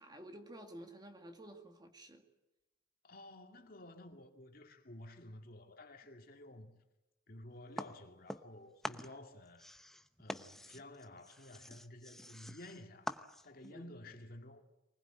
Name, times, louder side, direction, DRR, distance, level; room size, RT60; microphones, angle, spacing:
voice 1, 0.0-2.2 13.6-14.0, right 1 dB, 20° right, 2.1 m, -52 dB
voice 2, 3.0-6.7 7.3-9.7 10.2-13.2 13.4-14.6, left 1 dB, 45° left, 2.3 m, -53 dB
sound 1, 7.8-8.6 8.8-13.7, equal, ahead, 0.8 m, -46 dB
24.0 x 20.0 x 9.0 m
head